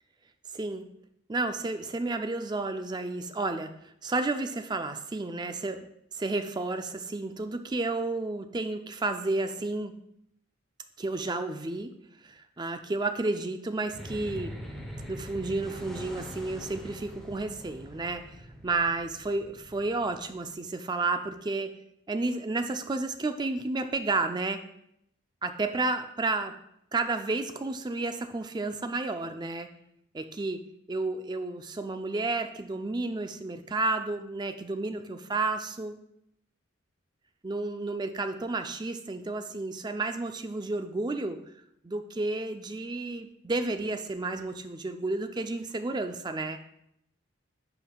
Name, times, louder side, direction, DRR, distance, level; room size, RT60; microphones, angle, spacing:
voice 1, 0.5-0.8 1.3-9.9 11.0-11.9 12.2-14.5 15.1-18.3 18.6-21.7 22.1-24.6 25.4-26.5 26.9-29.7 30.1-30.6 30.9-35.9 37.4-41.4 41.8-46.6, right 3 dB, 20° right, 8 dB, 0.4 m, -31 dB
sound 1, 13.9-20.5, equal, 5° left, 0.8 m, -43 dB
10.0 x 5.3 x 2.3 m, 0.76 s
head